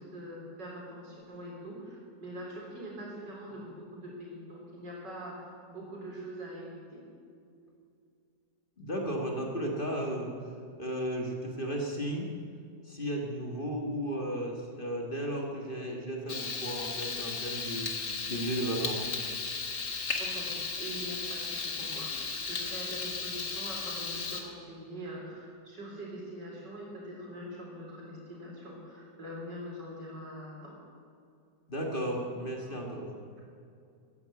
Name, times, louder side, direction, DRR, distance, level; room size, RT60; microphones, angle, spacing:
voice 1, 0.0-7.0 20.2-30.8 32.6-32.8, equal, 75° right, -2 dB, 4.5 m, -43 dB
voice 2, 8.8-10.3 10.8-12.3 12.9-17.9 18.3-19.1 31.7-33.1, right 1 dB, 30° left, 0 dB, 1.8 m, -34 dB
Frying (food), 16.3-24.4, left 4 dB, 65° left, 2.1 m, -35 dB
15.0 x 10.0 x 8.3 m, 2.4 s
omnidirectional pair, 1.9 m